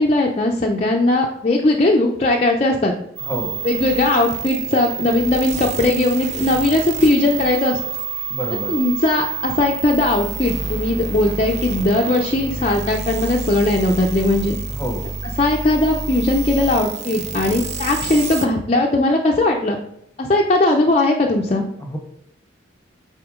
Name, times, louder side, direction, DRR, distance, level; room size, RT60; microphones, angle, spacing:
voice 1, 0.0-2.9 3.6-7.8 8.7-14.6 15.4-19.8 20.2-21.7, left 2 dB, 30° left, 0 dB, 0.5 m, -18 dB
voice 2, 3.2-3.6 8.3-8.8 14.7-15.1 21.8-22.0, equal, 10° left, 3 dB, 0.9 m, -28 dB
sound 1, 3.2-18.5, right 5 dB, 35° right, 0.5 m, -28 dB
7.9 x 4.3 x 3.7 m, 0.75 s
head